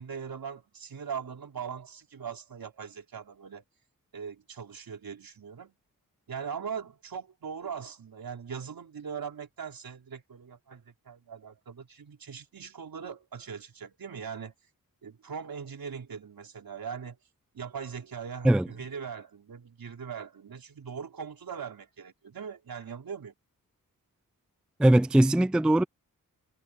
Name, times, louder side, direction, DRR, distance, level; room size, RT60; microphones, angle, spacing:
voice 1, 0.0-3.6 4.1-5.7 6.3-14.5 15.0-17.2 17.5-23.3, right 6 dB, 75° right, 4.0 m, -40 dB
voice 2, 24.8-25.8, right 1 dB, 5° right, 0.3 m, -20 dB
cardioid pair, 70°, 35 cm